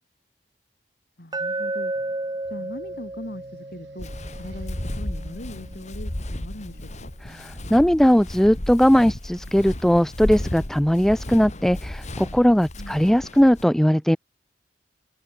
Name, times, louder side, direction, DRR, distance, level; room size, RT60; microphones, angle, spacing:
voice 1, 1.2-1.9 2.5-4.1 4.4-7.1 12.8-13.0, left 1 dB, 55° left, 2.7 m, -39 dB
Glass, 1.3-5.4, right 2 dB, 25° right, 1.6 m, -32 dB
sound 1, 1.9-12.7, right 1 dB, 85° right, 2.6 m, -52 dB
Walk footsteps, 4.0-13.6, left 1 dB, 40° left, 2.1 m, -34 dB
voice 2, 7.3-14.2, equal, ahead, 0.3 m, -19 dB
head